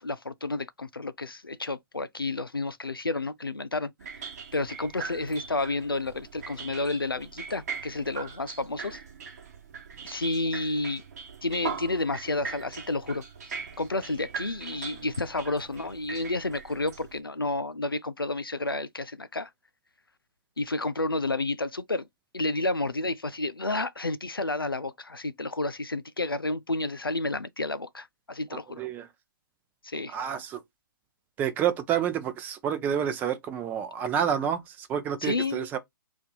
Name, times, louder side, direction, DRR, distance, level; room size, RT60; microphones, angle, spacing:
voice 1, 0.0-9.0 10.0-11.0 11.4-13.2 13.8-19.5 20.6-22.1 22.3-28.8 29.8-30.2 35.2-35.7, left 2 dB, 90° left, 0.5 m, -31 dB
sound 1, 4.0-17.2, right 6 dB, 45° right, 0.9 m, -40 dB
voice 2, 28.5-29.1 30.1-30.6 31.4-35.8, right 9 dB, 15° right, 0.5 m, -29 dB
2.6 x 2.5 x 4.0 m
figure-of-eight pair, 130°, 12 cm